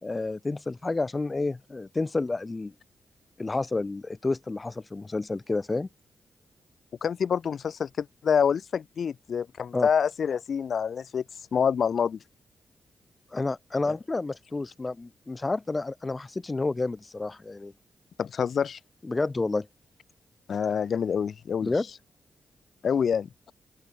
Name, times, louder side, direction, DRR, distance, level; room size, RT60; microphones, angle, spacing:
voice 1, 0.0-2.7 3.4-5.9 9.7-9.9 13.3-17.7 19.0-19.7 21.6-21.9, left 3 dB, 30° left, 3.3 m, -30 dB
voice 2, 7.0-11.2 11.5-12.2 13.8-13.9 18.2-18.8 20.5-21.7 22.8-23.3, left 7 dB, 65° left, 1.4 m, -26 dB
open air
cardioid pair, 70°, 0 cm